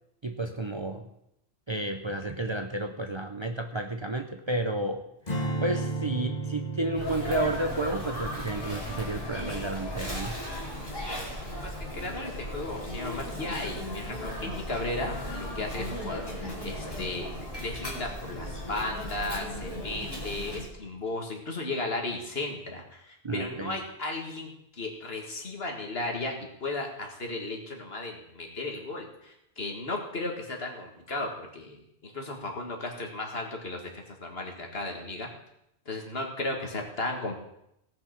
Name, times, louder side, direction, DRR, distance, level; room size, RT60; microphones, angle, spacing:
voice 1, 0.2-1.1 1.7-5.0 5.6-10.4 23.2-23.8, right 2 dB, 30° right, 5 dB, 0.6 m, -31 dB
Strum, 5.3-11.6, right 3 dB, 40° left, 1.7 m, -36 dB
Sneeze, 6.9-20.7, left 1 dB, 20° left, 2.8 m, -36 dB
voice 2, 11.4-33.8 34.2-35.3 35.9-37.4, left 2 dB, 65° left, 2 dB, 2.2 m, -35 dB
18.0 x 5.9 x 6.0 m, 0.80 s
omnidirectional pair, 1.1 m